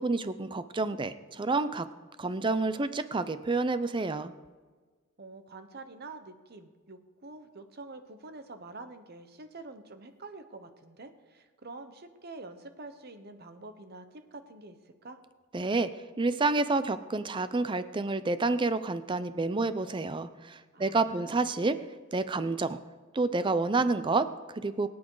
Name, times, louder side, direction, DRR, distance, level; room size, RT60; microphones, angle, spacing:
voice 1, 0.0-1.9 2.2-4.3 15.5-21.8 22.1-22.8 23.1-24.9, right 3 dB, 20° right, 12 dB, 0.5 m, -29 dB
voice 2, 5.2-14.8 15.0-15.2 20.7-21.4, right 3 dB, 50° right, 9 dB, 1.0 m, -47 dB
22.5 x 8.6 x 3.9 m, 1.4 s
head